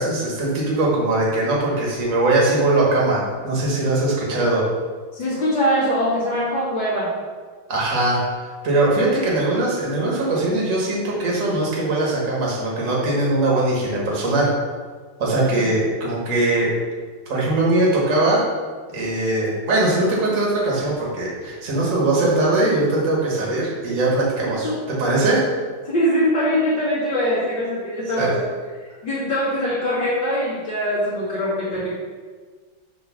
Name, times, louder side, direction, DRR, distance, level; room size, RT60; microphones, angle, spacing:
voice 1, 0.0-4.6 7.7-8.2 8.6-14.5 15.2-16.7 17.3-18.4 18.9-25.4 28.2-28.3, right 2 dB, 40° right, -5 dB, 1.8 m, -21 dB
voice 2, 5.1-7.1 15.4-15.7 24.5-24.8 25.8-28.3 29.0-31.9, equal, 60° left, -14 dB, 2.9 m, -22 dB
7.1 x 3.2 x 6.0 m, 1.5 s
omnidirectional pair, 2.3 m